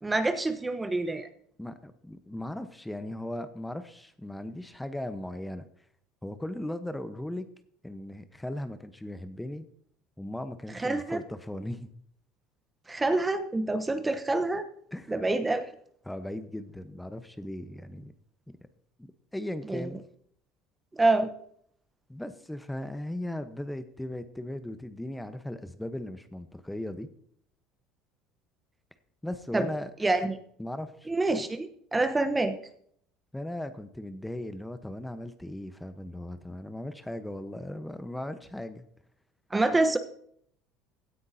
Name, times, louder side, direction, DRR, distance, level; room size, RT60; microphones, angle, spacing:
voice 1, 0.0-1.3 10.7-11.2 12.9-14.7 15.1-15.7 19.7-19.9 20.9-21.3 29.5-29.7 30.0-30.4 31.1-32.6 39.5-40.0, right 2 dB, 15° right, 9 dB, 1.0 m, -26 dB
voice 2, 1.6-5.7 6.2-7.5 7.8-9.6 10.2-11.9 14.9-15.2 16.0-18.1 19.0-20.0 22.1-27.1 29.2-29.9 30.2-30.3 30.6-31.1 33.3-38.8, left 1 dB, 5° left, 10 dB, 1.0 m, -37 dB
16.5 x 9.5 x 2.8 m, 0.65 s
hypercardioid pair, 75°, 0 cm